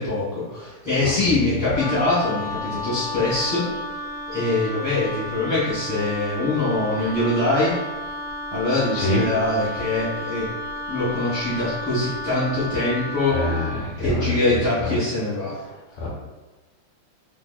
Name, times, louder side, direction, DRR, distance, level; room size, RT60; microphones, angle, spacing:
voice 1, 0.0-3.6 4.3-7.7 8.5-10.5 10.9-13.4 14.0-15.5, left 2 dB, 25° right, -12 dB, 1.1 m, -23 dB
voice 2, 1.0-1.6 8.9-9.2 13.3-14.9 16.0-16.1, left 1 dB, 90° left, -4 dB, 1.8 m, -26 dB
Wind instrument woodwind instrument, 1.7-13.8, left 1 dB, 50° left, 1.1 m, -32 dB
3.6 x 2.6 x 2.3 m, 1.2 s
omnidirectional pair, 2.4 m